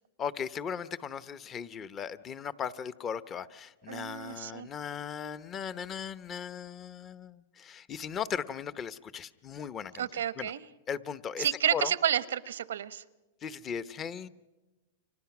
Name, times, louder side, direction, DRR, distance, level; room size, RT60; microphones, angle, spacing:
voice 1, 0.2-10.1 10.4-10.5 10.9-11.9 13.4-14.3, left 7 dB, 25° left, 15 dB, 0.9 m, -37 dB
voice 2, 3.9-4.7 9.9-10.6 11.4-13.0, right 10 dB, 85° right, 16 dB, 0.9 m, -30 dB
30.0 x 25.5 x 6.1 m, 1.1 s
hypercardioid pair, 125°, 0 cm